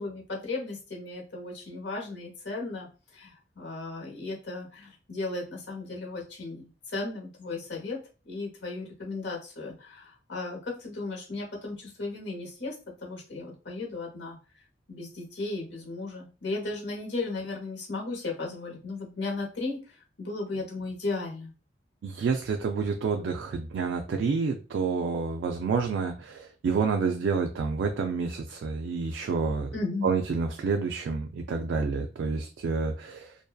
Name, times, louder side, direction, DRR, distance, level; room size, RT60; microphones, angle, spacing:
voice 1, 0.0-2.9 3.1-8.0 8.2-12.7 13.0-14.4 14.9-21.5 29.7-30.1, left 3 dB, 75° left, -1 dB, 0.9 m, -35 dB
voice 2, 22.0-29.7 30.0-33.4, right 5 dB, 75° right, 4 dB, 0.3 m, -29 dB
2.6 x 2.2 x 2.3 m, 0.34 s
head